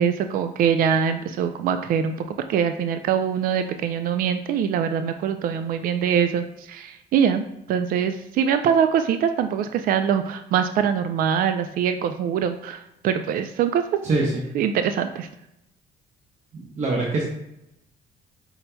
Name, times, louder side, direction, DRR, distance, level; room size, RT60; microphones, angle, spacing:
voice 1, 0.0-13.8 14.5-15.3, right 8 dB, 60° right, 8 dB, 0.4 m, -23 dB
voice 2, 16.5-17.2, right 3 dB, 45° right, -3 dB, 0.9 m, -23 dB
5.4 x 4.3 x 2.2 m, 0.82 s
cardioid pair, 110°, 17 cm